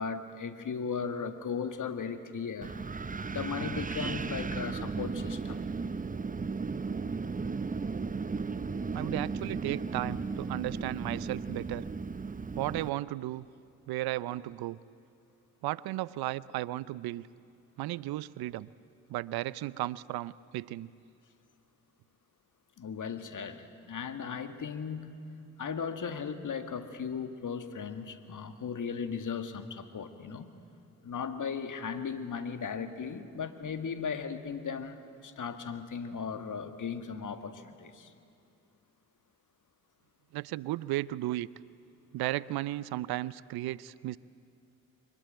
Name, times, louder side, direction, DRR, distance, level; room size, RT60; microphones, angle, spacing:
voice 1, 0.0-2.8 3.3-5.6 22.8-25.2 25.6-30.5 31.0-38.1, left 6 dB, 50° left, 8 dB, 2.0 m, -37 dB
Wind, 2.6-12.9, right 4 dB, 20° right, 0.8 m, -35 dB
voice 2, 8.9-11.8 12.6-13.4 13.9-14.8 15.6-17.3 17.8-18.7 19.1-20.9 40.3-41.5 42.1-44.2, right 16 dB, 70° right, 20 dB, 0.6 m, -34 dB
24.0 x 19.5 x 9.1 m, 2.6 s
hypercardioid pair, 50°, 40 cm